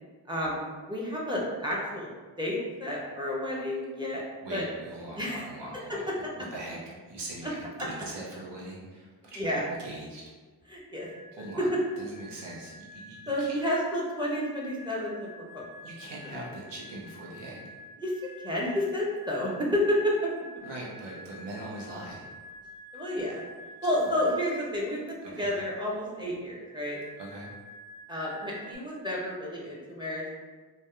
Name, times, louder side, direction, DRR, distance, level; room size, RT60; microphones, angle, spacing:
voice 1, 0.3-2.1 2.4-4.2 4.5-4.6 5.2-5.5 5.9-6.0 9.4-9.6 10.7-11.1 11.6-11.7 13.3-15.7 18.0-18.1 18.4-20.1 22.9-23.4 23.8-27.0 28.1-30.3, left 1 dB, 10° right, -4 dB, 0.7 m, -30 dB
voice 2, 4.4-6.1 6.4-10.3 11.3-11.7 12.0-13.6 15.8-17.8 20.6-22.3 24.1-24.2 25.3-25.5 27.2-27.6, right 1 dB, 75° right, -4 dB, 0.8 m, -41 dB
sound 1, 11.0-24.7 26.6-28.8, left 1 dB, 40° right, 1.2 m, -48 dB
2.7 x 2.1 x 2.3 m, 1.4 s
cardioid pair, 45°, 43 cm